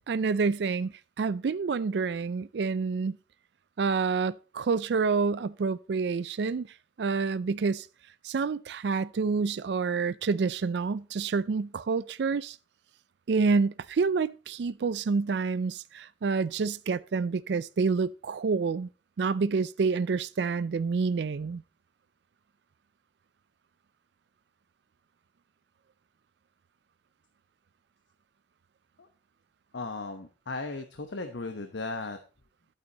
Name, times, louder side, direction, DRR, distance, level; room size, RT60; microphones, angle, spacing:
voice 1, 0.1-3.2 3.8-6.7 7.0-7.9 8.2-12.6 13.3-18.9 19.2-21.6, right 4 dB, 65° right, 0.4 m, -28 dB
voice 2, 29.7-32.2, left 3 dB, 75° left, 1.0 m, -36 dB
11.5 x 8.9 x 2.9 m
head